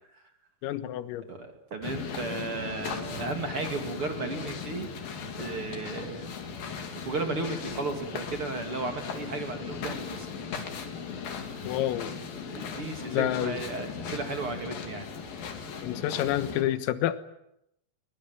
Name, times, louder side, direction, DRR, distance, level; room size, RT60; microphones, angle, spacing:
voice 1, 0.6-1.2 11.7-12.1 13.1-13.6 15.8-17.2, left 13 dB, 80° left, 13 dB, 3.9 m, -28 dB
voice 2, 1.3-4.9 5.3-6.3 6.9-10.3 11.5-11.7 12.5-15.1, right 3 dB, 35° right, 5 dB, 2.5 m, -34 dB
sound 1, 1.8-16.6, left 6 dB, 50° left, 4.1 m, -38 dB
23.5 x 23.0 x 9.2 m, 0.80 s
omnidirectional pair, 6.0 m